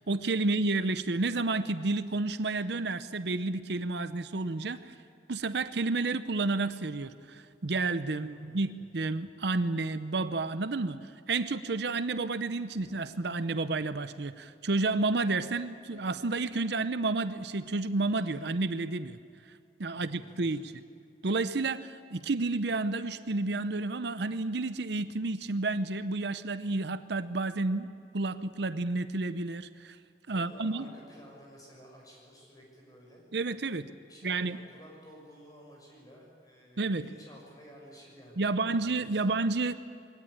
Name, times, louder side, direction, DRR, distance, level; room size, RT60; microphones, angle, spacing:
voice 1, 0.0-4.9 5.3-19.2 19.8-20.8 21.2-27.9 28.1-30.0 30.3-30.9 33.3-33.9 34.2-34.6 36.8-37.0 38.4-39.7, right 3 dB, 65° right, 13 dB, 0.7 m, -30 dB
voice 2, 8.1-8.9 19.9-20.7 30.3-33.2 34.1-39.4, equal, 20° left, -2 dB, 6.5 m, -53 dB
sound 1, 12.7-13.6 13.9-14.0 15.9-16.7 18.2-18.7, equal, 45° left, 3.2 m, -56 dB
23.0 x 17.5 x 10.0 m, 2.4 s
head